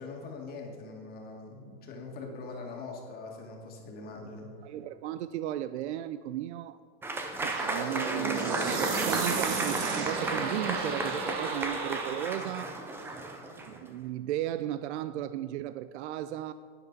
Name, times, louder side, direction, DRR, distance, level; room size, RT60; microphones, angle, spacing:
voice 1, 0.0-4.5, left 3 dB, 25° left, 0 dB, 1.9 m, -42 dB
voice 2, 4.6-6.8 7.4-13.2 13.6-16.5, right 13 dB, 75° right, 13 dB, 0.5 m, -35 dB
Applause / Crowd, 7.0-13.8, right 2 dB, 5° right, 0.6 m, -34 dB
sound 1, 7.5-12.5, right 4 dB, 45° right, 1.5 m, -34 dB
11.0 x 9.7 x 4.0 m, 2.2 s
supercardioid pair, 155°, 34 cm